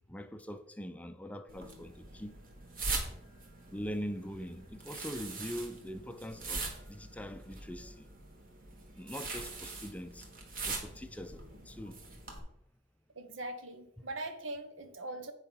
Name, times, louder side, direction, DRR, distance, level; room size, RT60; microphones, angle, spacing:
voice 1, 0.0-2.4 3.7-8.1 8.9-10.3 10.6-12.0 14.0-14.1, equal, 5° left, 0.4 m, -42 dB
sound 1, 1.5-12.4, right 3 dB, 50° right, 1.6 m, -42 dB
voice 2, 13.2-15.3, right 2 dB, 90° right, 1.0 m, -41 dB
8.3 x 4.9 x 5.4 m
head